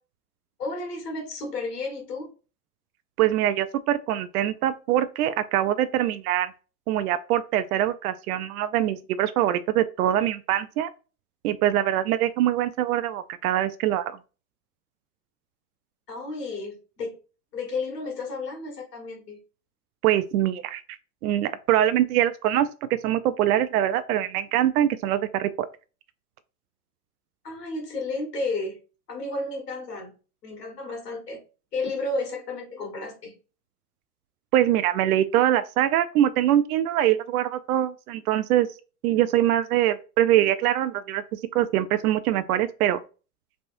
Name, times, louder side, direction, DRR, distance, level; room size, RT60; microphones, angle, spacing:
voice 1, 0.6-2.3 16.1-17.2 17.5-19.4 27.4-28.8 29.1-30.1 30.4-31.4 31.7-33.4, left 3 dB, 85° left, 1.7 m, -32 dB
voice 2, 3.2-6.5 6.9-10.9 11.4-14.2 20.0-20.8 21.2-25.7 34.5-38.7 39.0-43.0, right 12 dB, 70° right, 0.5 m, -23 dB
4.1 x 3.3 x 2.6 m
hypercardioid pair, 100°, 47 cm